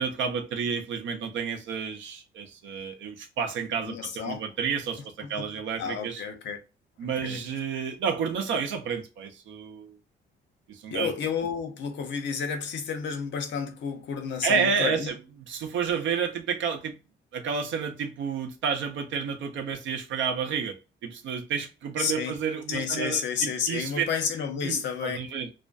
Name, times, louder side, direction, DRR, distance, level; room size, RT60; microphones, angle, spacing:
voice 1, 0.0-6.2 7.0-9.9 10.7-11.1 14.4-15.2 15.5-16.9 17.3-20.8 21.0-24.0 24.6-25.5, right 6 dB, 75° right, 0.5 m, -30 dB
voice 2, 3.8-4.4 5.2-5.3 5.8-6.6 7.2-7.4 10.9-15.1 22.0-22.3 22.7-25.2, left 6 dB, 70° left, 0.7 m, -31 dB
2.4 x 2.2 x 2.3 m
cardioid pair, 90°, 20 cm